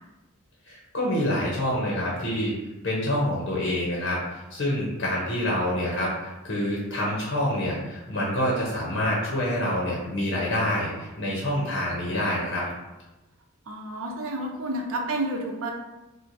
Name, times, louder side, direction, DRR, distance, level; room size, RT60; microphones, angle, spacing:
voice 1, 0.7-2.5 2.8-12.7, left 1 dB, 55° left, -4 dB, 0.7 m, -27 dB
voice 2, 13.7-15.7, right 1 dB, 80° right, 1 dB, 0.6 m, -30 dB
4.4 x 2.1 x 2.6 m, 1.0 s
head